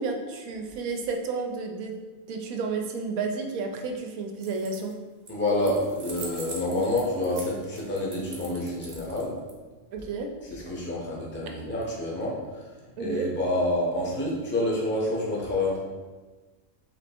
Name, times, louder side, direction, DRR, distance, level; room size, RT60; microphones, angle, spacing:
voice 1, 0.0-1.9 2.3-4.9 9.9-10.3 13.0-13.3, right 4 dB, 90° right, 3 dB, 1.1 m, -31 dB
sound 1, 4.3-4.9 5.3-9.5, right 3 dB, 45° right, 1.0 m, -42 dB
voice 2, 5.3-9.4 10.5-12.6 13.0-15.8, left 1 dB, 10° left, -3 dB, 0.6 m, -28 dB
3.6 x 3.1 x 4.3 m, 1.3 s
omnidirectional pair, 1.4 m